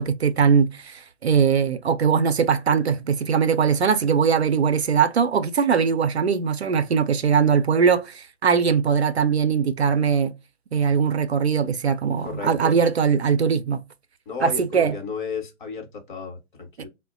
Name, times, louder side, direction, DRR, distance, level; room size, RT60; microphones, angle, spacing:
voice 1, 0.0-10.3 10.7-13.8 14.4-15.0, right 6 dB, 60° right, 0.5 m, -21 dB
voice 2, 12.2-12.8 14.3-16.9, left 5 dB, 40° left, 1.0 m, -33 dB
4.4 x 2.1 x 2.4 m
figure-of-eight pair, 135°, 38 cm